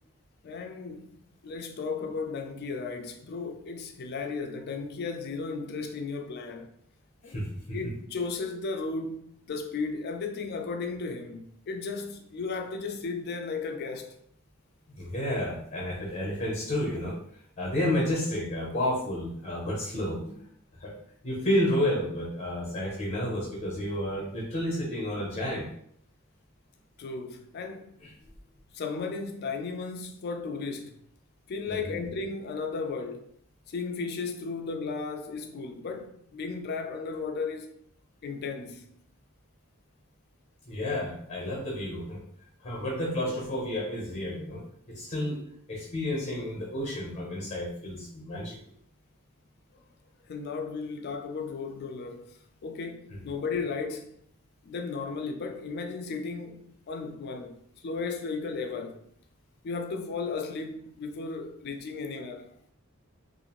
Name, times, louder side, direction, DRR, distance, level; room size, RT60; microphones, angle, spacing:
voice 1, 0.4-6.7 7.2-7.4 7.7-14.1 27.0-28.0 28.7-31.0 31.5-33.3 33.7-37.8 38.2-38.9 50.3-54.2 54.6-59.0 59.6-62.5, left 4 dB, 50° left, 0.4 m, -35 dB
voice 2, 7.3-7.8 14.9-17.1 17.6-20.3 20.8-20.9 21.2-25.7 28.0-28.1 31.7-32.0 40.7-42.2 42.6-45.4 45.7-48.6, left 1 dB, 30° left, 0.8 m, -31 dB
2.6 x 2.5 x 2.9 m
head